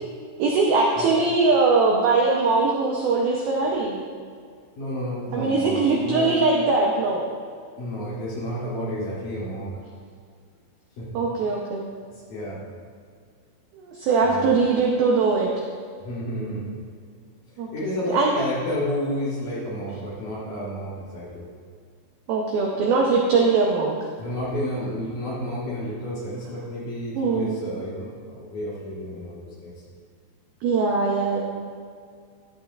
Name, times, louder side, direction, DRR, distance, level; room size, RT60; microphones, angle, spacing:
voice 1, 0.4-4.1 5.3-7.3 11.1-11.9 13.7-15.5 17.6-17.7 18.1-18.3 22.3-24.0 27.2-27.6 30.6-31.4, right 4 dB, 80° right, -1 dB, 2.2 m, -21 dB
voice 2, 4.8-6.3 7.8-9.8 11.0-11.2 12.1-12.6 14.2-14.6 16.0-16.8 17.7-21.5 24.2-29.7, equal, 50° left, -8 dB, 4.1 m, -31 dB
14.5 x 11.0 x 2.6 m, 2.2 s
omnidirectional pair, 5.6 m